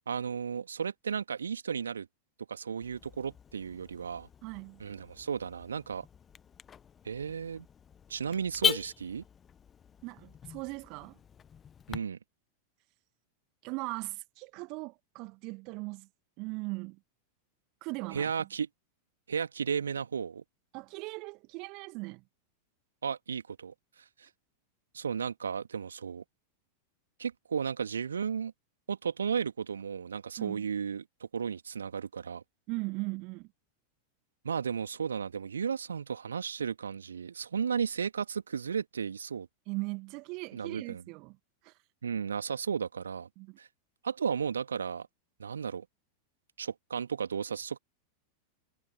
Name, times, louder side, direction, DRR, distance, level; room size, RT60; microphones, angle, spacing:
voice 1, 0.1-2.1 2.5-4.3 4.8-6.1 7.0-7.7 8.1-9.2 11.9-12.2 18.1-18.7 19.3-20.4 23.0-23.7 24.2-24.3 24.9-26.2 27.2-28.5 28.9-31.0 31.3-32.4 34.4-39.5 40.5-41.0 42.0-43.3 43.6-43.7 44.0-45.1 45.4-45.9 46.6-47.8, right 6 dB, 70° right, 2.3 m, -34 dB
Car / Alarm, 2.8-12.0, left 7 dB, 20° left, 1.0 m, -39 dB
voice 2, 4.4-4.8 10.0-11.2 13.6-16.1 16.4-17.0 17.8-18.3 20.7-22.2 30.4-30.6 32.7-33.5 39.7-41.4 41.6-41.7 43.4-43.6, right 27 dB, 40° right, 1.7 m, -39 dB
figure-of-eight pair, 90°, 0 cm